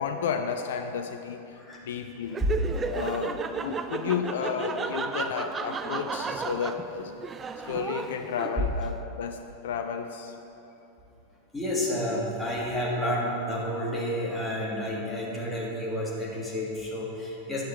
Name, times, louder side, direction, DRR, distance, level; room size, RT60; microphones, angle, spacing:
voice 1, 0.0-1.5 1.8-2.4 2.8-7.1 7.6-10.3, left 6 dB, 60° left, 6 dB, 0.5 m, -32 dB
voice 2, 1.5-1.9 2.4-2.5 7.6-7.7 11.5-17.6, equal, 5° left, -4 dB, 1.7 m, -30 dB
Laughter, 2.3-8.8, right 5 dB, 20° right, 0.4 m, -34 dB
10.0 x 7.5 x 4.2 m, 2.8 s
figure-of-eight pair, 90°, 0 cm